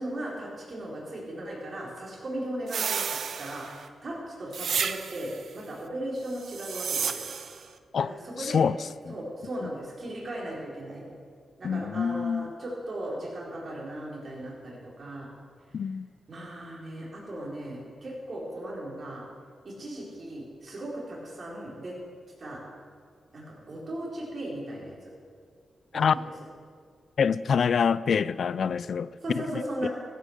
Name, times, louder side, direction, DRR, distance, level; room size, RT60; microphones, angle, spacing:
voice 1, 0.0-3.1 3.4-7.3 8.0-8.6 9.1-11.0 11.6-15.3 16.3-19.2 19.6-21.9 22.4-22.6 23.3-25.1 25.9-26.2 29.2-29.9, right 1 dB, 50° right, 4.6 m, -37 dB
sound 1, 2.7-3.9 4.5-5.4 6.4-7.6, right 6 dB, 70° right, 0.6 m, -32 dB
voice 2, 8.4-8.8 9.1-9.2 11.6-12.5 15.7-16.1 25.9-26.1 27.2-29.9, left 6 dB, 65° left, 0.3 m, -26 dB
15.0 x 9.1 x 6.6 m
cardioid pair, 70°, 0 cm